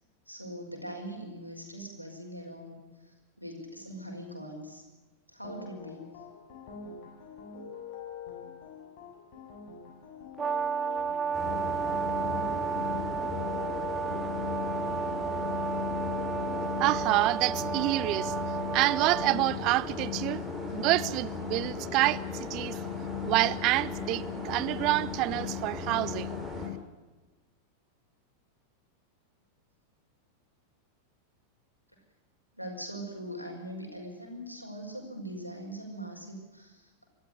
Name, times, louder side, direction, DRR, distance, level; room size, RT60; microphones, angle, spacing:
voice 1, 0.3-4.8 5.3-6.2 32.5-37.1, right 1 dB, 90° left, 5.3 m, -42 dB
sound 1, 5.4-16.7, left 6 dB, 45° left, 7.3 m, -45 dB
Brass instrument, 10.4-19.4, right 7 dB, 20° right, 1.3 m, -32 dB
sound 2, 11.3-26.7, left 5 dB, ahead, 5.7 m, -36 dB
voice 2, 16.8-18.3 18.7-20.4 20.7-22.8 23.2-26.4, right 18 dB, 40° right, 0.8 m, -27 dB
24.0 x 13.5 x 9.5 m
figure-of-eight pair, 90°, 0 cm